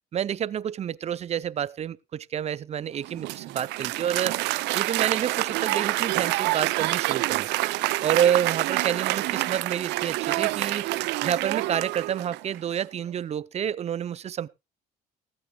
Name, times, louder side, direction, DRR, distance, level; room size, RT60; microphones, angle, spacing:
voice 1, 0.1-4.4 4.7-7.5 8.0-10.9 11.2-14.5, right 9 dB, 40° right, 0.6 m, -28 dB
Applause, 3.0-12.6, right 19 dB, 90° right, 0.5 m, -27 dB
16.0 x 15.5 x 2.3 m
cardioid pair, 110°, 17 cm